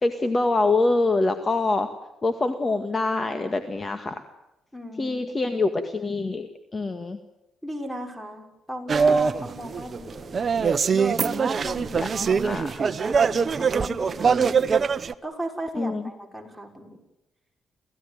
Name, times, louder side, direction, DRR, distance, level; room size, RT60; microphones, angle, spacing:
voice 1, 0.0-1.9 2.2-4.2 5.0-7.2 12.0-12.1 12.4-12.8 15.7-16.1, left 3 dB, 30° left, 7 dB, 1.9 m, -25 dB
voice 2, 4.7-5.6 7.6-10.4 11.2-14.8 15.2-17.0, equal, 5° left, 4 dB, 6.0 m, -37 dB
sound 1, 8.9-15.1, right 5 dB, 40° right, 1.0 m, -23 dB
28.0 x 16.0 x 9.4 m, 0.94 s
cardioid pair, 90°, 0 cm